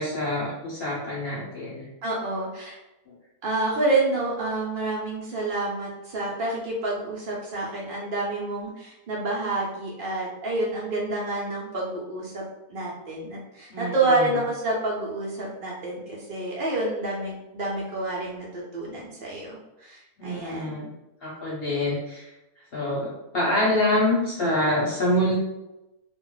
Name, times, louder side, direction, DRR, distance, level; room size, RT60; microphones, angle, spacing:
voice 1, 0.0-1.9 3.1-3.2 13.7-14.4 20.2-20.9 21.2-22.2 22.7-23.1 23.3-25.3, left 1 dB, 50° left, -6 dB, 0.8 m, -26 dB
voice 2, 2.0-2.8 3.4-12.4 12.7-20.8, right 2 dB, 90° right, -4 dB, 0.4 m, -28 dB
2.5 x 2.1 x 3.8 m, 0.94 s
omnidirectional pair, 1.6 m